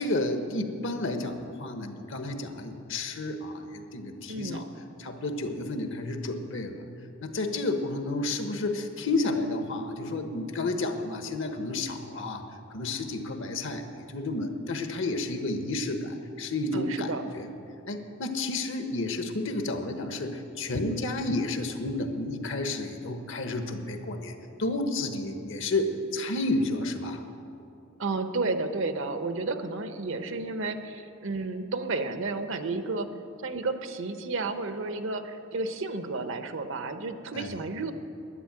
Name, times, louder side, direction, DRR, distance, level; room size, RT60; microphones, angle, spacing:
voice 1, 0.0-4.6 5.0-6.8 7.2-12.4 12.7-17.1 17.3-17.5 17.9-24.3 24.6-27.2 37.3-37.5, left 2 dB, 65° left, 6 dB, 1.1 m, -31 dB
voice 2, 4.3-4.6 16.7-17.2 28.0-33.1 33.4-37.9, right 3 dB, 65° right, 9 dB, 0.9 m, -32 dB
11.0 x 9.8 x 8.8 m, 2.8 s
head